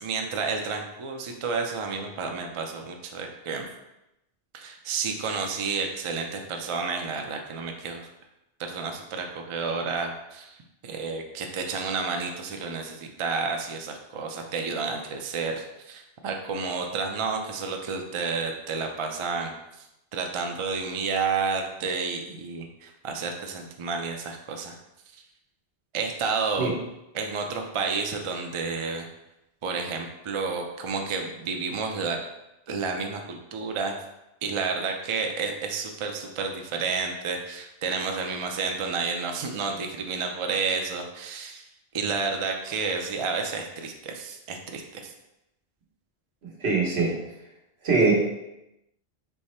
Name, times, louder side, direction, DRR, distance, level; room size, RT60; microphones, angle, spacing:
voice 1, 0.0-3.6 4.5-8.1 8.7-10.6 10.8-19.5 20.1-24.8 25.9-26.7 27.1-29.1 29.6-32.2 32.7-34.0 34.4-41.6 41.9-45.1, right 4 dB, 45° right, 3 dB, 0.4 m, -30 dB
voice 2, 46.6-47.2 47.8-48.1, right 3 dB, 80° right, -1 dB, 1.2 m, -22 dB
3.5 x 3.1 x 4.1 m, 0.91 s
omnidirectional pair, 1.1 m